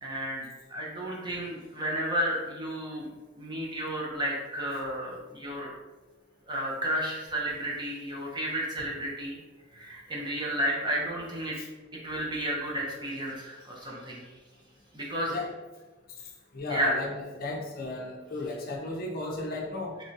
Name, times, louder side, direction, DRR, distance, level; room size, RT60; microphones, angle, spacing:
voice 1, 0.0-3.1 3.4-5.7 6.5-9.4 9.7-11.5 12.0-14.2 14.9-15.3 16.7-16.9, equal, 20° right, -4 dB, 0.7 m, -32 dB
voice 2, 16.5-20.0, left 2 dB, 45° left, -1 dB, 0.6 m, -34 dB
3.5 x 3.0 x 2.7 m, 1.2 s
head